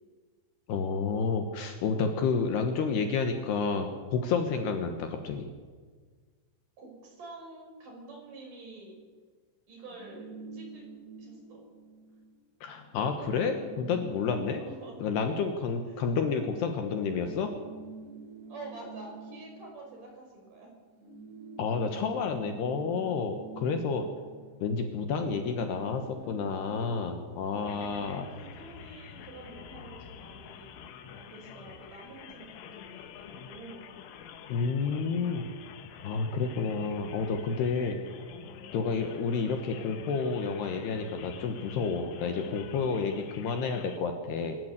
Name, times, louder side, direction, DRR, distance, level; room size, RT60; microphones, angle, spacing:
voice 1, 0.7-5.5 12.6-14.6 15.0-17.5 21.6-24.1 24.6-28.2 34.5-35.5 36.0-38.0 38.7-44.6, left 5 dB, 65° left, 5 dB, 3.1 m, -30 dB
voice 2, 6.8-9.0 9.7-10.9 11.2-11.7 14.6-15.0 15.9-16.0 18.5-20.8 27.7-30.7 31.1-33.9, right 2 dB, 45° right, 1 dB, 6.8 m, -48 dB
sound 1, 9.8-12.4 12.7-12.8 13.1-16.5 17.0-20.6 20.8-28.4, right 3 dB, 70° right, 10.0 m, -48 dB
sound 2, 27.6-44.0, left 7 dB, 85° left, 3.9 m, -47 dB
26.0 x 13.5 x 8.2 m, 1.5 s
omnidirectional pair, 5.5 m